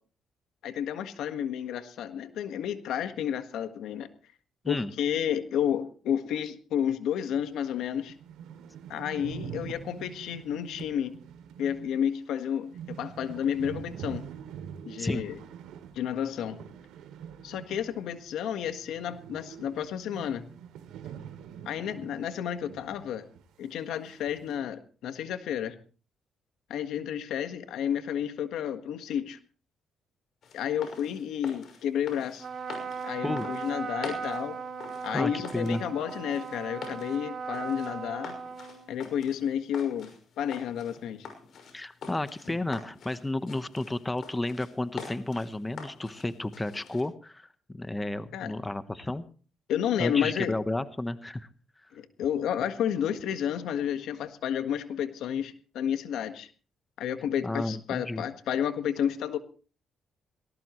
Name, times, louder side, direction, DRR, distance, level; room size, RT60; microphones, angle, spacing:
voice 1, 0.6-4.1 4.6-8.1 8.9-11.2 11.6-14.3 14.8-15.4 15.9-16.6 17.4-20.4 21.6-23.3 23.6-25.7 26.7-29.4 30.5-32.5 33.0-34.6 35.0-38.4 38.9-40.1 40.4-41.3 48.3-48.5 49.7-50.5 51.9-56.5 57.0-59.4, left 9 dB, 80° left, 9 dB, 1.6 m, -31 dB
sound 1, 7.4-7.5 7.8-7.9 8.1-18.3 18.6-23.1 23.3-23.4 24.1-24.5, right 8 dB, 90° right, 2.5 m, -44 dB
sound 2, 30.4-47.0, left 5 dB, 65° left, 5.9 m, -46 dB
Trumpet, 32.3-39.2, right 5 dB, 50° right, 3.0 m, -38 dB
voice 2, 35.1-35.8 41.7-49.2 50.0-51.5 51.8-51.9 57.4-58.2, left 2 dB, 15° left, 12 dB, 1.1 m, -32 dB
19.0 x 18.5 x 3.2 m, 0.39 s
cardioid pair, 90°, 0 cm